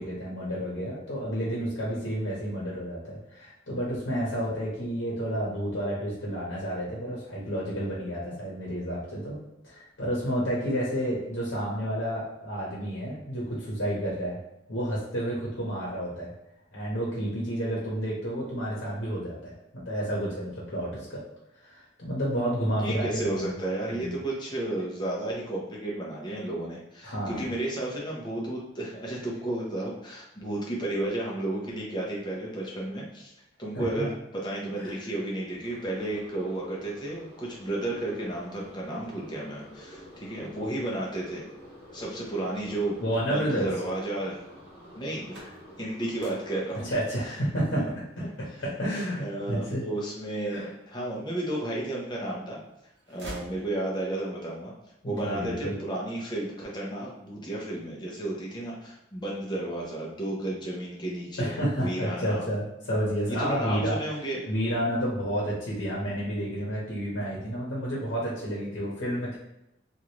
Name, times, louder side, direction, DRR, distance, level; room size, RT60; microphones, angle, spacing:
voice 1, 0.0-9.4 9.6-14.4 14.7-16.3 16.7-21.2 21.6-23.5 23.9-24.1 27.0-27.5 33.7-34.1 34.8-34.9 43.0-43.7 46.8-47.8 48.4-49.8 50.5-50.7 55.0-55.8 61.4-64.0 64.5-69.4, equal, 75° left, -6 dB, 0.9 m, -30 dB
voice 2, 22.8-33.3 33.6-41.4 41.9-43.0 43.3-44.4 45.0-46.9 47.2-47.4 47.8-47.9 48.2-48.3 49.2-52.6 53.1-54.7 55.0-62.5 63.3-64.4, right 1 dB, 25° left, -4 dB, 0.7 m, -33 dB
sound 1, 35.6-46.8, equal, 30° right, 1.5 m, -49 dB
sound 2, 45.2-51.0 51.5-52.3 52.6-54.2, right 1 dB, 60° right, 0.7 m, -49 dB
3.2 x 2.5 x 2.9 m, 0.88 s
head